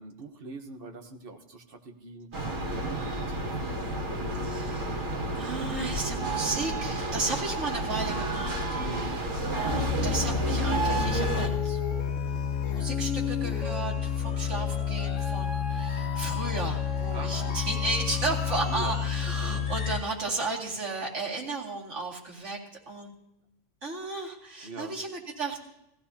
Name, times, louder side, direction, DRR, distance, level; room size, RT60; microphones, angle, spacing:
voice 1, 0.0-4.0 8.7-9.2 17.1-17.6 18.7-19.1 19.4-19.6 24.6-24.9, right 2 dB, 45° right, 5 dB, 1.3 m, -43 dB
sound 1, 2.3-11.5, right 2 dB, 90° right, 2.2 m, -31 dB
voice 2, 4.4-5.0 5.4-9.2 9.6-11.8 12.6-22.6 22.9-23.1 23.8-25.6, right 3 dB, 65° right, -5 dB, 2.7 m, -34 dB
sound 2, 9.7-20.0, left 7 dB, 75° left, 1.5 m, -30 dB
18.5 x 15.0 x 2.8 m, 0.86 s
omnidirectional pair, 1.3 m